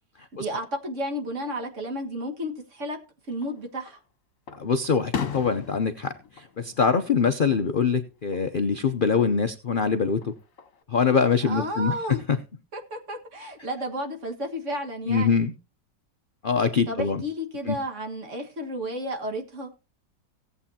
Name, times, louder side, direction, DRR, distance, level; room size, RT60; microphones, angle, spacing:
voice 1, 0.3-3.0 3.3-4.0 11.4-12.2 12.7-15.4 16.9-19.7, equal, 45° right, 1.9 m, -32 dB
Fireworks, 3.3-4.0 4.5-7.6 7.9-8.5 10.0-10.8, left 7 dB, 50° left, 1.5 m, -37 dB
voice 2, 4.6-10.3 10.9-12.0 12.3-12.4 15.1-15.5 16.4-17.2 17.7-17.8, left 5 dB, 75° left, 0.4 m, -24 dB
17.5 x 8.1 x 2.8 m
omnidirectional pair, 1.9 m